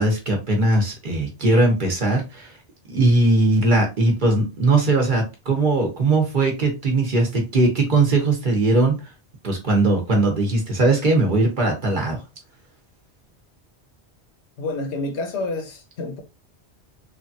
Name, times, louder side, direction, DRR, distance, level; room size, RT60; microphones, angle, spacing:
voice 1, 0.0-2.5 2.9-9.0 9.4-12.2, right 2 dB, 50° right, 1.0 m, -19 dB
voice 2, 14.6-16.2, left 2 dB, 90° left, 1.0 m, -28 dB
3.3 x 2.2 x 2.6 m
omnidirectional pair, 1.1 m